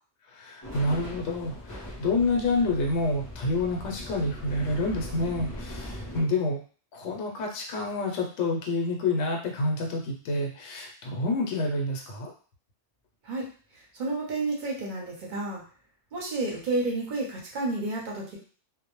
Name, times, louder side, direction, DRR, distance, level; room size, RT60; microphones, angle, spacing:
voice 1, 0.3-6.6 6.9-12.3, left 2 dB, 80° left, 0 dB, 0.9 m, -28 dB
sound 1, 0.6-6.2, left 1 dB, 25° left, 0.5 m, -40 dB
voice 2, 13.9-15.6 16.1-18.4, right 2 dB, 50° right, -2 dB, 0.7 m, -30 dB
2.1 x 2.0 x 2.9 m, 0.41 s
omnidirectional pair, 1.2 m